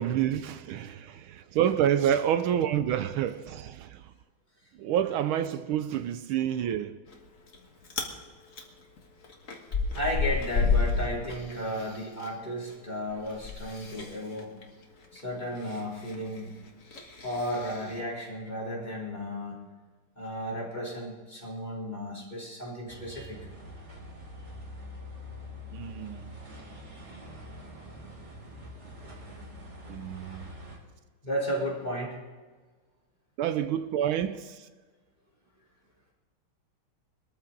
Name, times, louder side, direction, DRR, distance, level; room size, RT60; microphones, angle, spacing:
voice 1, 0.0-4.0 4.8-7.0 25.7-26.4 29.9-30.5 33.4-34.7, right 10 dB, 80° right, 1.4 m, -28 dB
Chewing mastication, 7.1-7.6 7.8-8.1 8.5-12.3 12.6-18.0, left 4 dB, 40° left, 1.8 m, -31 dB
voice 2, 9.9-14.5 15.1-16.5 17.2-19.6 20.2-23.4 31.2-32.2, equal, 20° left, 3.9 m, -34 dB
sound 1, 22.9-30.8, left 1 dB, 35° right, 2.6 m, -45 dB
22.0 x 13.5 x 3.9 m
omnidirectional pair, 2.3 m